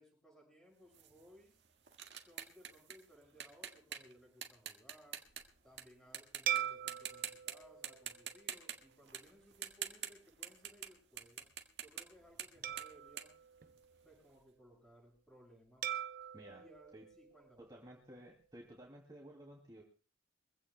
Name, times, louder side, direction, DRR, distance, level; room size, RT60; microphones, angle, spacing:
voice 1, 0.0-1.6 2.1-5.2 5.6-11.5 11.8-13.4 14.0-15.9 16.5-17.7, equal, 5° left, -1 dB, 6.9 m, -62 dB
sound 1, 0.9-5.8 6.1-6.6 6.9-7.5 7.8-10.9 11.2-14.2, right 9 dB, 65° right, 1.8 m, -46 dB
sound 2, 6.5-9.1 9.7-9.9 12.6-14.4 15.8-18.1, right 10 dB, 50° right, 0.7 m, -43 dB
voice 2, 17.6-19.8, right 1 dB, 20° right, -2 dB, 2.6 m, -54 dB
24.0 x 16.0 x 2.3 m, 0.37 s
head